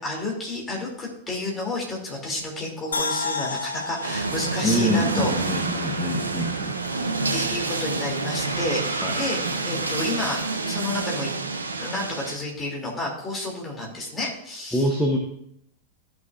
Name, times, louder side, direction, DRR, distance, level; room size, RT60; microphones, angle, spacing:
voice 1, 0.0-5.3 7.3-11.3 11.8-14.9, left 2 dB, 20° left, -2 dB, 2.7 m, -30 dB
sound 1, 2.9-6.1 6.5-6.6, left 3 dB, 75° left, 0.7 m, -32 dB
sound 2, 4.0-12.4, right 3 dB, 75° right, 0.8 m, -28 dB
voice 2, 4.6-6.8 9.0-9.3 14.7-15.2, left 1 dB, ahead, -1 dB, 1.1 m, -25 dB
13.5 x 6.1 x 2.5 m, 0.73 s
figure-of-eight pair, 90°, 0 cm